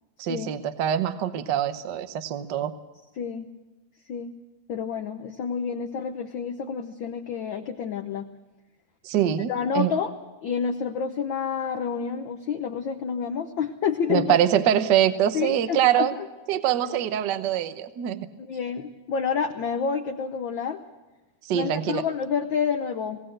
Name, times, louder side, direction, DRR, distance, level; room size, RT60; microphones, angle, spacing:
voice 1, 0.2-2.7 9.0-9.9 14.1-16.1 16.5-18.3 21.4-22.0, right 10 dB, 75° right, 10 dB, 0.9 m, -24 dB
voice 2, 3.2-3.5 4.1-4.3 4.7-8.3 9.5-10.1 10.4-14.4 15.3-16.2 16.9-17.0 18.4-20.8 21.5-23.2, left 6 dB, 90° left, 6 dB, 1.0 m, -29 dB
19.0 x 18.0 x 7.8 m, 1.1 s
omnidirectional pair, 3.3 m